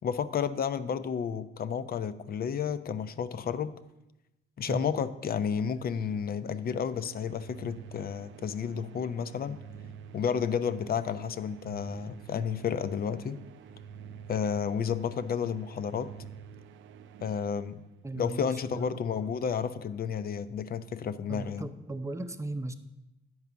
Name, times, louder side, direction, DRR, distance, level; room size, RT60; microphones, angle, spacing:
voice 1, 0.0-3.7 4.6-9.6 10.1-13.4 14.3-16.1 17.2-17.8 18.1-21.7, left 7 dB, 50° left, 13 dB, 0.6 m, -31 dB
sound 1, 6.4-18.3, right 7 dB, 75° right, 0.5 m, -49 dB
voice 2, 18.0-19.0 21.3-22.7, right 2 dB, 15° right, 9 dB, 0.7 m, -37 dB
9.5 x 4.9 x 6.9 m, 0.95 s
cardioid pair, 90°, 20 cm